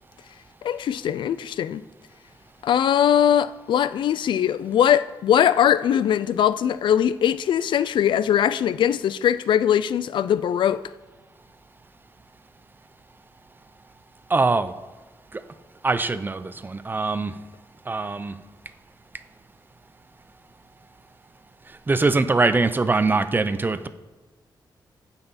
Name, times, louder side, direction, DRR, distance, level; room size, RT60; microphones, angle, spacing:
voice 1, 0.6-1.8 2.6-10.8, left 9 dB, 85° left, 0.3 m, -21 dB
voice 2, 14.3-14.7 15.8-17.3 17.9-18.3 21.9-23.9, right 3 dB, 25° right, 0.5 m, -22 dB
15.5 x 5.6 x 4.1 m
wide cardioid pair, 110°, 8 cm